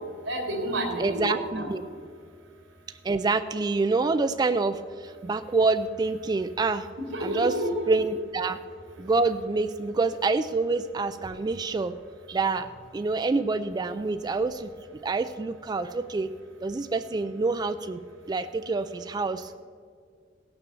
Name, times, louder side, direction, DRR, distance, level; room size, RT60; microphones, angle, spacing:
voice 1, 0.3-1.7 7.1-7.9, right 1 dB, 85° right, 3 dB, 2.7 m, -29 dB
voice 2, 1.0-1.8 3.0-6.9 7.2-7.5 7.9-8.6 9.0-11.9 12.3-12.7 12.9-14.7 15.0-16.3 16.6-18.0 18.3-19.5, right 3 dB, 20° right, 10 dB, 0.3 m, -27 dB
16.5 x 6.9 x 6.9 m, 2.1 s
head